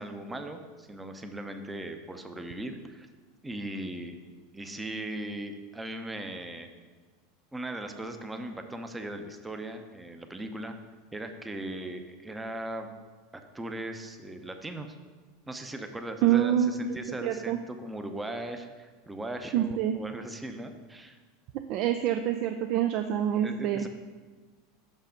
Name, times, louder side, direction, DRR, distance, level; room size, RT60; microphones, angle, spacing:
voice 1, 0.0-3.1 3.4-4.2 4.5-6.7 7.5-10.8 11.1-12.9 13.3-14.9 15.5-21.2 23.4-23.9, right 1 dB, 10° right, 6 dB, 0.7 m, -38 dB
voice 2, 16.2-17.6 19.5-19.9 21.7-23.8, right 10 dB, 55° right, 7 dB, 0.4 m, -26 dB
6.0 x 5.6 x 5.1 m, 1.4 s
hypercardioid pair, 105°, 0 cm